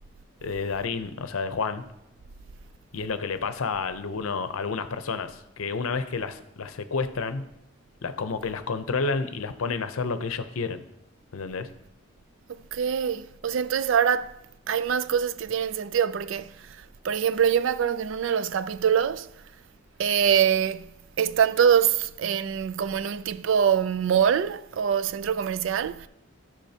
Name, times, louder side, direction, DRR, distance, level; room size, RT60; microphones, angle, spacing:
voice 1, 0.4-1.8 2.9-7.5 8.0-10.8 11.3-11.7, left 4 dB, 90° left, 0.6 m, -30 dB
voice 2, 12.5-14.4 14.7-16.8 17.0-19.3 20.0-20.9 21.2-26.1, right 8 dB, 65° right, 0.3 m, -24 dB
13.5 x 6.2 x 2.8 m
head